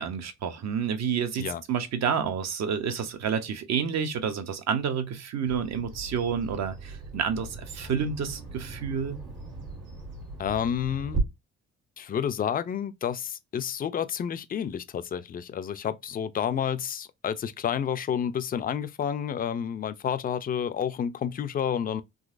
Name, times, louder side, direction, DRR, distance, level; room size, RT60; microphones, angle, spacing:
voice 1, 0.0-9.2, right 7 dB, 60° right, 0.8 m, -29 dB
Bird vocalization bird call bird song, 5.5-11.2, right 4 dB, 85° right, 1.6 m, -39 dB
voice 2, 10.4-11.2 12.0-22.0, left 8 dB, 30° left, 0.4 m, -30 dB
3.9 x 2.8 x 2.5 m
cardioid pair, 90°, 30 cm